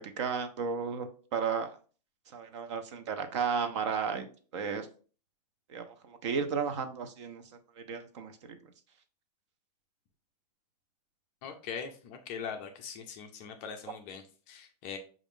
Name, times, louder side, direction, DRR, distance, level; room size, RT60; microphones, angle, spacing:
voice 1, 0.0-1.7 2.3-4.2 4.5-4.9 5.7-7.4 7.9-8.6, right 6 dB, 45° right, 7 dB, 0.6 m, -33 dB
voice 2, 11.4-15.0, left 6 dB, 25° left, 4 dB, 0.4 m, -41 dB
5.9 x 2.5 x 3.6 m, 0.39 s
hypercardioid pair, 155°, 21 cm